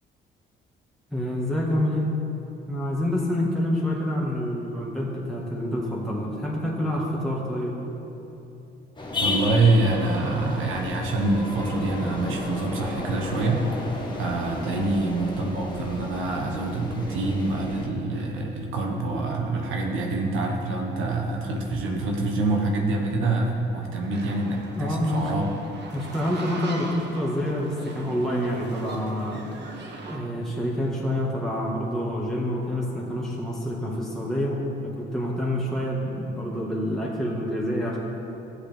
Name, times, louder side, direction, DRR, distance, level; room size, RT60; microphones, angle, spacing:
voice 1, 1.1-2.1 2.7-7.8 24.8-25.3 25.9-29.5 30.1-38.0, equal, ahead, -5 dB, 1.7 m, -27 dB
sound 1, 9.0-17.9, left 2 dB, 25° left, 1.5 m, -33 dB
voice 2, 9.2-13.7 14.2-25.5, right 2 dB, 85° right, 0 dB, 1.2 m, -26 dB
sound 2, 24.1-30.2, right 2 dB, 60° right, 1.3 m, -40 dB
13.0 x 8.0 x 3.5 m, 2.9 s
cardioid pair, 90°, 20 cm